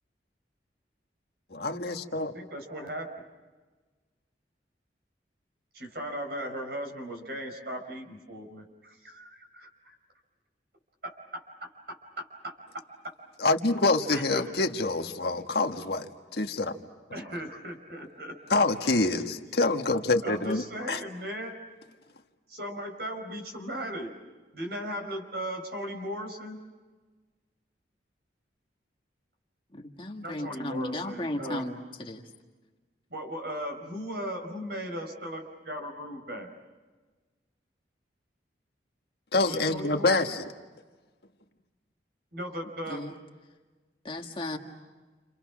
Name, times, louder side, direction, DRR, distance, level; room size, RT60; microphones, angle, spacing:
voice 1, 1.5-2.3 13.4-16.8 18.5-20.6 20.9-21.0 39.3-40.5, left 2 dB, 60° left, 5 dB, 1.6 m, -26 dB
voice 2, 2.2-3.2 5.7-10.0 11.0-11.5 11.9-13.1 14.1-14.5 17.1-18.4 20.2-21.5 22.5-24.1 24.5-26.6 30.2-31.7 33.1-36.5 39.4-40.3 42.3-43.1, equal, 60° right, 5 dB, 5.2 m, -37 dB
voice 3, 29.7-31.8 32.1-32.2 42.9-43.1 44.0-44.6, left 1 dB, 30° left, 2 dB, 1.8 m, -35 dB
30.0 x 29.0 x 6.1 m, 1.3 s
head